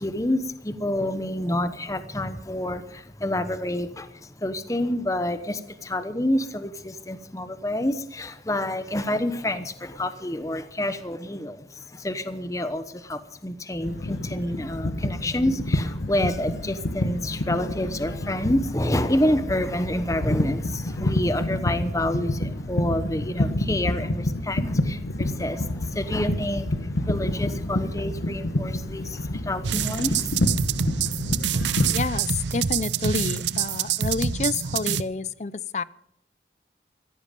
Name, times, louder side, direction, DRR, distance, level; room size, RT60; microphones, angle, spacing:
voice 1, 0.0-30.3, left 1 dB, 20° left, 11 dB, 0.9 m, -28 dB
sound 1, 13.8-31.9, left 1 dB, 90° left, 1.2 m, -28 dB
sound 2, 29.6-35.0, right 7 dB, 85° right, 0.7 m, -26 dB
voice 2, 31.9-35.8, left 4 dB, 40° left, 19 dB, 0.5 m, -29 dB
15.5 x 14.5 x 5.2 m, 0.79 s
head